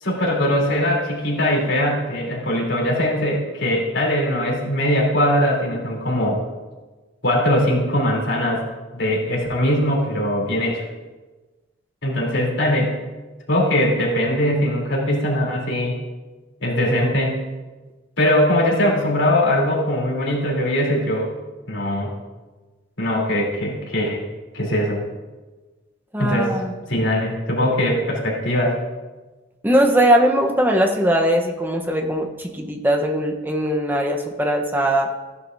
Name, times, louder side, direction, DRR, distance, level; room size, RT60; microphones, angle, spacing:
voice 1, 0.0-6.4 7.2-8.6 8.9-10.8 12.0-12.9 13.5-16.0 16.6-17.3 18.2-21.3 21.7-22.1 23.0-24.2 24.5-25.0 26.2-26.5 26.9-28.8, left 1 dB, 75° left, -3 dB, 3.4 m, -21 dB
voice 2, 26.1-26.7 29.6-35.1, right 1 dB, 10° right, 4 dB, 0.9 m, -20 dB
15.5 x 11.0 x 2.7 m, 1.2 s
head